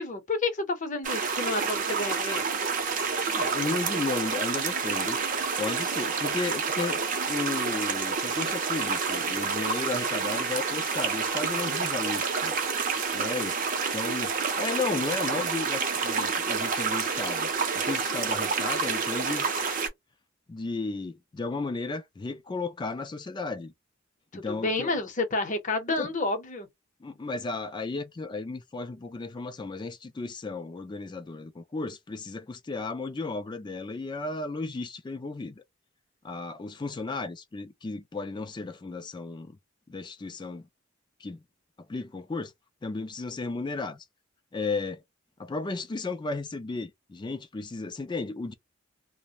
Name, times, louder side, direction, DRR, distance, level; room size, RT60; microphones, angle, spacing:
voice 1, 0.0-2.4 24.3-26.7, left 3 dB, 40° left, 0.7 m, -30 dB
sound 1, 1.0-19.9, right 5 dB, 40° right, 0.6 m, -29 dB
voice 2, 3.2-5.2 5.6-12.6 13.1-13.6 13.9-19.8 20.5-23.7 24.3-25.0 26.0-26.1 27.0-35.6 36.2-39.6 39.9-40.7 41.2-41.4 41.9-42.5 42.8-44.0 44.5-45.0 45.4-48.5, left 3 dB, 20° left, 0.3 m, -34 dB
2.4 x 2.1 x 2.8 m
head